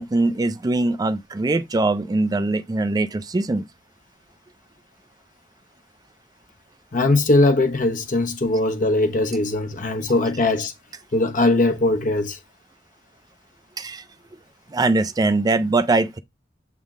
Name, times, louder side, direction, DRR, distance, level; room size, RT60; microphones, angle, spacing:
voice 1, 0.0-3.6 13.8-14.0 14.7-16.2, right 2 dB, 20° right, 0.3 m, -22 dB
voice 2, 6.9-10.7 11.1-12.4, left 2 dB, 50° left, 1.1 m, -20 dB
7.5 x 3.6 x 3.5 m
head